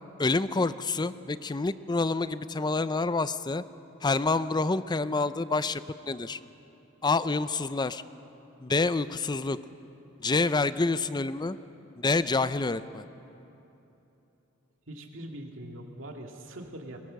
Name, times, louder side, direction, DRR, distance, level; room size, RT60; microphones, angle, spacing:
voice 1, 0.2-3.6 4.0-6.4 7.0-8.0 8.6-9.6 10.2-11.6 12.0-13.0, left 3 dB, 20° left, 14 dB, 0.5 m, -27 dB
voice 2, 14.9-17.0, right 1 dB, 70° right, 2 dB, 2.4 m, -42 dB
22.0 x 21.5 x 6.5 m, 3.0 s
head